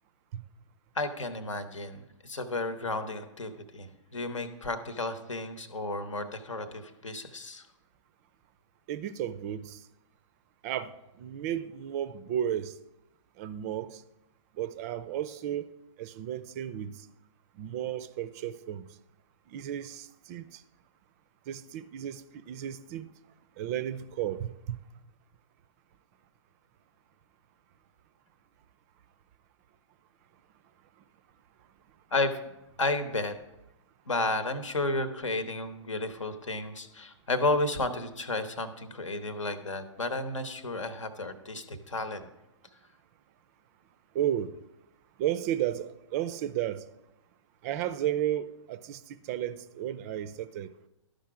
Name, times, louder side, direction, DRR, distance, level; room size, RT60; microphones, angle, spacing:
voice 1, 0.9-7.7 32.1-32.4 32.8-33.3 34.1-42.3, left 2 dB, 75° left, 1.0 m, -32 dB
voice 2, 8.9-9.8 10.6-12.8 13.4-14.0 14.5-15.7 16.0-17.1 17.5-18.9 19.5-20.6 21.5-23.1 23.6-24.8 44.1-44.5 45.2-46.8 47.6-50.7, right 11 dB, 30° right, 0.4 m, -33 dB
12.0 x 5.2 x 4.8 m
figure-of-eight pair, 115°, 16 cm